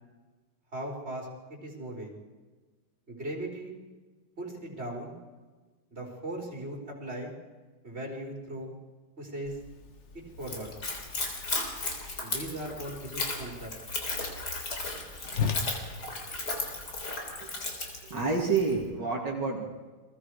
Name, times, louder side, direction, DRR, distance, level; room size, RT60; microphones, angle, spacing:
voice 1, 0.7-2.2 3.1-3.7 4.4-5.2 5.9-7.3 7.8-8.7 9.2-9.6 10.1-10.7 12.2-13.7, right 1 dB, 35° right, -1 dB, 4.9 m, -38 dB
Whoosh swoosh swish, 9.4-17.2, left 6 dB, 40° left, 1.5 m, -40 dB
Splash splatter / Trickle dribble, 10.4-18.7, left 2 dB, 60° left, 4.2 m, -35 dB
voice 2, 17.4-17.7 18.1-19.7, right 4 dB, 70° right, -2 dB, 3.1 m, -29 dB
30.0 x 22.5 x 4.9 m, 1.4 s
omnidirectional pair, 2.0 m